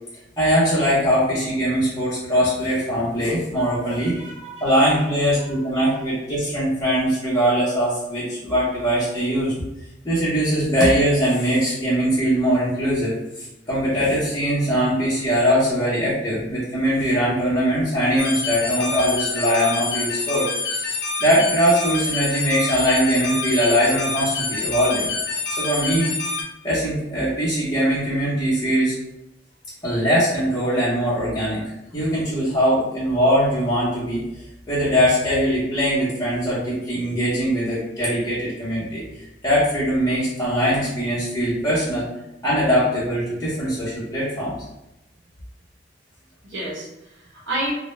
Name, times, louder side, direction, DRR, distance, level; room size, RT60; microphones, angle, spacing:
voice 1, 0.4-4.1 4.6-9.5 10.0-25.1 25.5-26.1 26.6-29.0 29.8-31.6 31.9-34.2 34.7-39.0 39.4-42.0 42.4-44.6, equal, 20° left, -11 dB, 0.7 m, -21 dB
voice 2, 3.5-5.0 5.4-6.1 46.4-47.7, right 2 dB, 85° right, -7 dB, 1.0 m, -33 dB
sound 1, 18.2-26.4, left 3 dB, 65° left, 0.6 m, -27 dB
2.1 x 2.0 x 3.0 m, 0.91 s
head